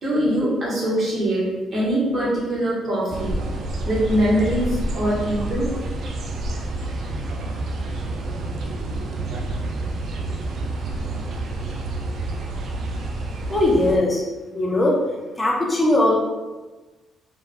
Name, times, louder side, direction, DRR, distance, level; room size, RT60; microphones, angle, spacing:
voice 1, 0.0-1.4 1.7-3.3 3.8-5.7, right 1 dB, 40° right, -7 dB, 1.3 m, -22 dB
sound 1, 3.1-14.0, right 2 dB, 65° right, 0.4 m, -28 dB
voice 2, 13.5-14.2 14.5-15.0 15.4-16.2, left 1 dB, 20° left, -3 dB, 0.7 m, -19 dB
3.2 x 2.4 x 2.3 m, 1.2 s
cardioid pair, 90°, 0 cm